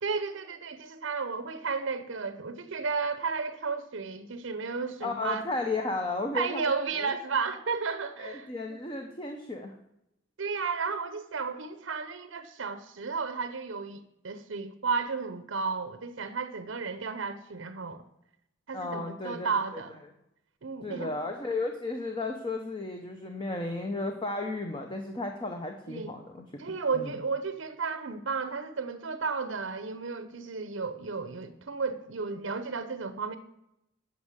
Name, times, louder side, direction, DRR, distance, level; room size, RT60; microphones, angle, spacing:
voice 1, 0.0-5.4 6.3-8.8 10.4-18.0 18.7-19.9 20.6-21.1 25.9-26.2 26.6-33.4, right 5 dB, 65° right, 11 dB, 0.7 m, -33 dB
voice 2, 5.0-6.7 7.0-7.1 8.2-9.7 18.7-19.8 20.8-26.6 26.9-27.1, left 2 dB, 25° left, 4 dB, 0.8 m, -34 dB
9.8 x 5.4 x 7.3 m, 0.84 s
head